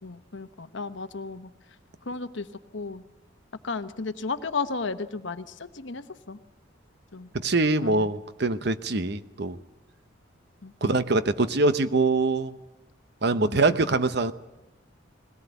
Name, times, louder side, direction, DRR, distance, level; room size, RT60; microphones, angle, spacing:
voice 1, 0.0-1.5 2.1-2.5 2.7-3.0 3.6-6.4 7.1-7.3 7.8-8.1 10.6-11.0 13.4-13.9, left 4 dB, 65° left, 11 dB, 1.0 m, -34 dB
voice 2, 7.3-9.6 10.8-12.5 13.2-14.3, right 2 dB, 55° right, 12 dB, 0.9 m, -24 dB
21.5 x 17.5 x 8.2 m, 1.0 s
head